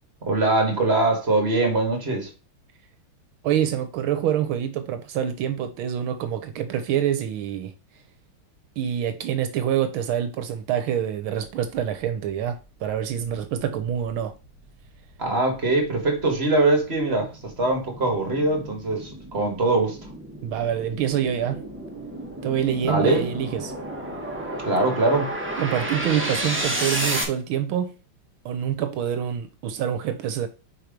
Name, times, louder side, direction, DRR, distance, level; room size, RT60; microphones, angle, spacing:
voice 1, 0.2-2.3 15.2-20.0 22.8-23.2 24.6-25.3, right 2 dB, 30° right, 1.8 m, -22 dB
voice 2, 3.4-7.7 8.8-14.3 20.4-21.6 22.4-23.7 25.6-27.9 28.4-30.5, right 10 dB, 80° right, 1.5 m, -26 dB
sound 1, 14.4-27.2, right 1 dB, 10° right, 0.9 m, -32 dB
4.8 x 4.5 x 5.1 m
omnidirectional pair, 2.3 m